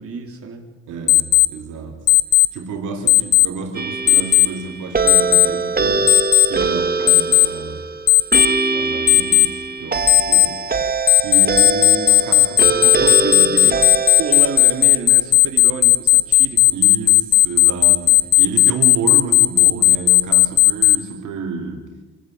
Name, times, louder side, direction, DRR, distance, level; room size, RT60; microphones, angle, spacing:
voice 1, 0.0-0.7 12.9-13.8 14.1-16.8, right 5 dB, 50° right, 2 dB, 4.2 m, -29 dB
voice 2, 0.9-2.0 2.5-7.9 8.7-10.6 11.2-13.8 16.7-22.0, right 4 dB, 80° right, 2 dB, 3.6 m, -30 dB
Alarm, 1.1-1.5 2.1-2.5 3.1-3.5 4.1-4.5 5.1-5.5 6.1-6.5 7.1-7.5 8.1-8.5 9.1-9.5 10.1-10.5 11.1-21.0, left 19 dB, 85° left, 1.1 m, -12 dB
sound 1, 3.7-15.0, right 4 dB, 30° right, 2.0 m, -23 dB
27.5 x 13.5 x 9.0 m, 1.2 s
cardioid pair, 90°, 30 cm